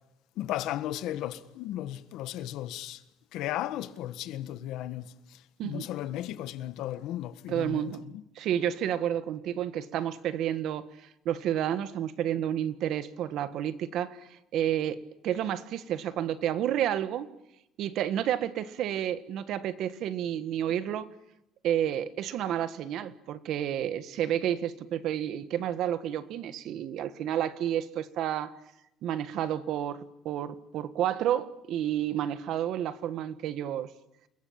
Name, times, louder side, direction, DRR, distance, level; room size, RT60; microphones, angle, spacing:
voice 1, 0.4-3.0 3.3-8.2, left 13 dB, 70° left, 1.5 m, -35 dB
voice 2, 7.5-8.1 8.3-10.9 11.2-15.0 15.2-17.3 17.8-21.1 21.6-28.5 29.0-30.0 30.2-33.9, right 10 dB, 60° right, 1.5 m, -30 dB
28.5 x 22.0 x 8.9 m
cardioid pair, 145°, 0 cm